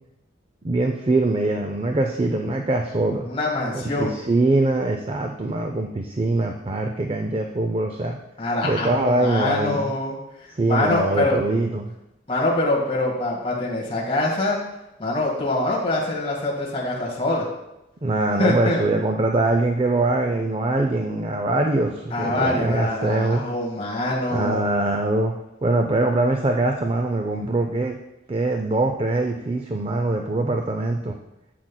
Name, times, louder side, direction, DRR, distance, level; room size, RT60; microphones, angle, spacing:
voice 1, 0.6-3.3 3.7-8.2 8.6-9.9 10.5-11.9 18.0-23.4 24.3-25.3 25.6-28.0 28.3-31.2, right 2 dB, 30° right, 4 dB, 0.4 m, -23 dB
voice 2, 3.2-4.1 8.4-10.1 10.6-11.4 12.3-14.6 15.0-17.5 18.4-18.9 22.1-24.6, left 2 dB, 30° left, -4 dB, 1.6 m, -24 dB
10.5 x 7.5 x 2.2 m, 0.92 s
head